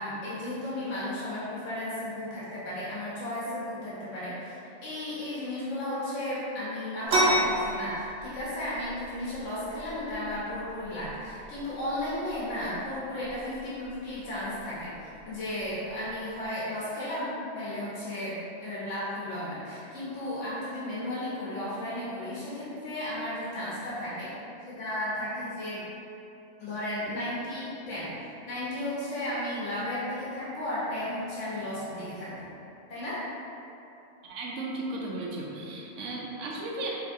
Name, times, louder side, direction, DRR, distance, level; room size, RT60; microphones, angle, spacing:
voice 1, 0.0-18.4 18.6-24.3 24.7-25.8 26.6-28.1 28.4-32.5 32.9-33.2, left 1 dB, 85° left, -9 dB, 1.2 m, -34 dB
sound 1, 7.1-16.5, right 1 dB, 60° right, 1.0 m, -33 dB
voice 2, 34.2-36.9, right 2 dB, 80° right, -3 dB, 1.0 m, -35 dB
4.9 x 2.9 x 2.7 m, 2.8 s
omnidirectional pair, 1.2 m